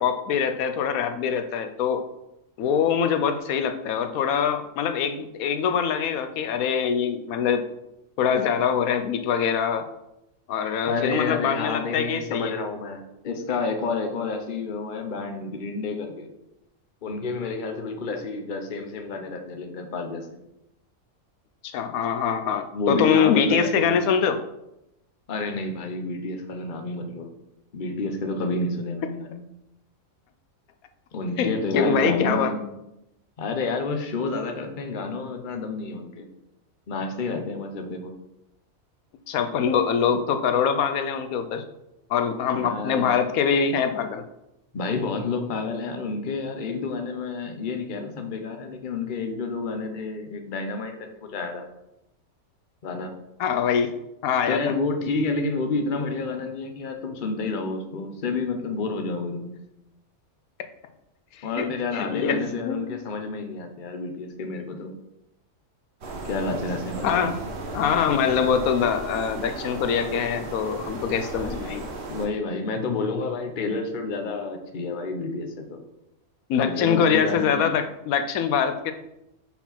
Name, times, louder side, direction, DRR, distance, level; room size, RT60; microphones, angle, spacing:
voice 1, 0.0-2.0 2.6-7.6 8.2-9.9 10.5-12.5 21.6-24.4 31.4-32.5 39.3-41.6 42.1-44.2 53.4-53.9 54.2-54.6 61.4-61.7 61.9-62.9 67.0-67.4 67.7-71.9 76.5-78.9, left 7 dB, 80° left, 8 dB, 1.0 m, -24 dB
voice 2, 10.9-16.3 17.0-20.3 22.7-24.0 25.3-27.3 27.7-29.4 31.1-32.7 33.4-36.3 36.9-38.1 42.5-43.1 44.7-51.7 52.8-53.1 54.5-59.5 61.4-64.9 66.2-67.3 72.1-75.8 76.6-77.7, left 3 dB, 40° left, 5 dB, 0.9 m, -29 dB
sound 1, 66.0-72.3, right 2 dB, 55° right, 1.2 m, -35 dB
5.6 x 4.5 x 5.7 m, 0.88 s
omnidirectional pair, 1.5 m